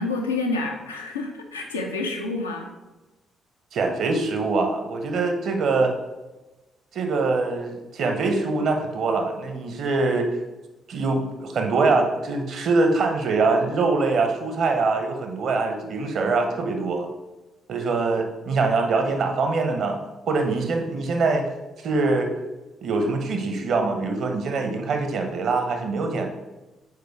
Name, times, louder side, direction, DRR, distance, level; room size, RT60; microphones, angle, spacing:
voice 1, 0.0-2.7, left 3 dB, 85° left, 2 dB, 0.6 m, -28 dB
voice 2, 3.7-5.9 6.9-10.3 10.9-17.1 17.7-20.0 20.3-21.5 21.8-22.3 22.8-26.3, right 3 dB, 55° right, 5 dB, 0.9 m, -23 dB
4.8 x 4.5 x 4.7 m, 1.1 s
figure-of-eight pair, 45°, 0 cm